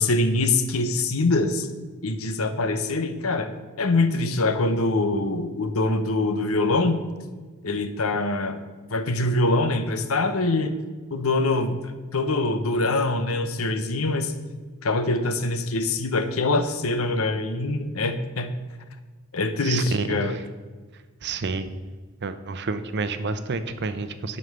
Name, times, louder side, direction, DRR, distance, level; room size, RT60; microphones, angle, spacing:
voice 1, 0.0-1.7 2.0-3.5 3.8-7.0 7.6-8.6 8.9-10.7 11.1-11.8 12.1-14.3 14.8-18.5 19.3-20.4, left 2 dB, 75° left, 9 dB, 0.8 m, -24 dB
voice 2, 19.6-20.1 21.2-21.7 22.2-24.4, right 4 dB, 50° right, 11 dB, 0.7 m, -29 dB
9.6 x 5.4 x 6.7 m, 1.4 s
head